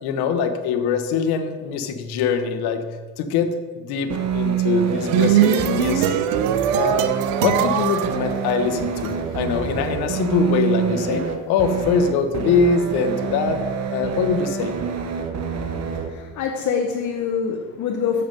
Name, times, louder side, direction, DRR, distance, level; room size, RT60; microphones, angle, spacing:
voice 1, 0.0-2.8 3.2-6.2 6.7-7.1 7.4-13.6 13.9-14.8, left 6 dB, 65° left, 8 dB, 1.1 m, -23 dB
sound 1, 4.1-16.1, right 7 dB, 40° right, 1.0 m, -26 dB
sound 2, 4.8-9.1, right 11 dB, 85° right, 0.7 m, -21 dB
voice 2, 16.0-18.2, left 6 dB, 45° left, 2 dB, 0.9 m, -25 dB
7.6 x 6.8 x 5.3 m, 1.5 s
supercardioid pair, 105°, 41 cm